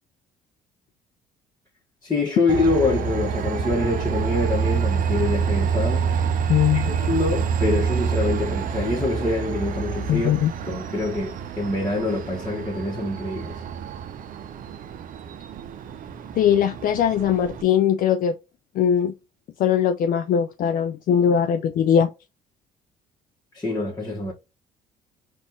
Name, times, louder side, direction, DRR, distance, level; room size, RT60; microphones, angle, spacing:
voice 1, 2.0-6.1 6.7-10.3 10.7-13.6 23.5-24.3, left 2 dB, 20° left, 1.3 m, -25 dB
Train, 2.5-17.6, right 6 dB, 55° right, 0.6 m, -27 dB
voice 2, 6.5-6.9 10.1-10.5 16.3-18.3 18.7-19.1 19.6-22.1, left 8 dB, 55° left, 0.4 m, -20 dB
4.1 x 2.5 x 3.5 m
hypercardioid pair, 60°, 17 cm